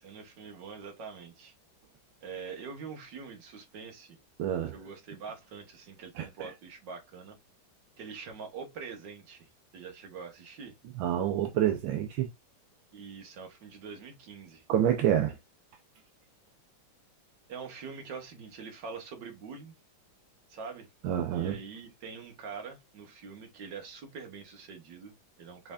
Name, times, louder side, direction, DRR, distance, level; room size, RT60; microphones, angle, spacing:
voice 1, 0.0-1.5 2.2-4.2 4.7-7.4 8.0-9.5 9.7-10.7 12.9-14.6 17.5-19.7 20.5-20.9 21.3-25.7, right 5 dB, 65° right, 2.0 m, -44 dB
voice 2, 4.4-4.7 6.2-6.5 11.0-12.3 14.7-15.4 21.0-21.6, right 10 dB, 80° right, 1.5 m, -28 dB
5.9 x 3.4 x 2.5 m
omnidirectional pair, 2.2 m